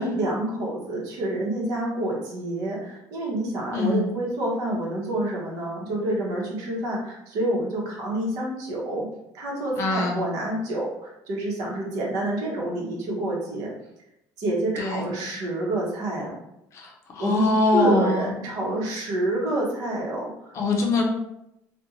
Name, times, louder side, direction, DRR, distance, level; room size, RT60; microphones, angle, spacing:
voice 1, 0.0-9.1 9.3-13.7 14.4-16.4 17.2-17.4 17.7-20.5, right 1 dB, 65° right, -3 dB, 0.9 m, -28 dB
voice 2, 3.7-4.1 9.8-10.2 14.8-15.1 16.7-18.3 20.5-21.0, left 2 dB, 45° left, 0 dB, 0.5 m, -23 dB
2.5 x 2.2 x 2.8 m, 0.83 s
cardioid pair, 150°, 7 cm